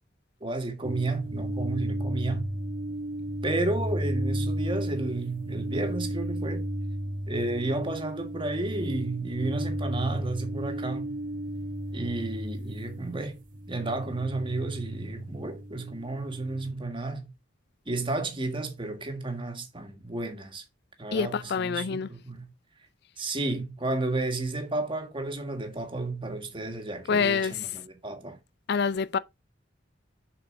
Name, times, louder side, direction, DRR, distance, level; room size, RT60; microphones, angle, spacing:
voice 1, 0.4-2.5 3.4-6.7 7.3-11.1 11.9-13.4 13.7-17.3 17.9-20.6 21.0-22.5 23.2-28.4, right 2 dB, 30° right, 1.8 m, -32 dB
sound 1, 0.8-16.7, right 1 dB, 45° right, 1.1 m, -33 dB
voice 2, 21.1-22.1 27.1-27.5 28.7-29.2, left 5 dB, 60° left, 0.4 m, -26 dB
6.9 x 6.1 x 3.8 m
head